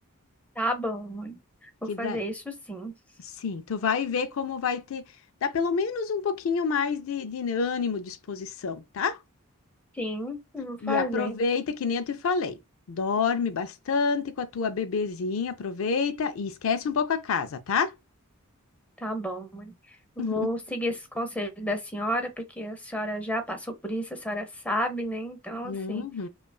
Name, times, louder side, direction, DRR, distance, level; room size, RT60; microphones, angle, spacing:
voice 1, 0.6-2.9 9.9-11.3 19.0-26.1, equal, 5° left, 0.8 m, -32 dB
voice 2, 1.9-2.2 3.4-5.0 5.4-9.2 10.8-12.6 12.9-17.9 20.2-20.5 25.6-26.3, left 5 dB, 70° left, 0.4 m, -28 dB
5.4 x 2.3 x 2.3 m
head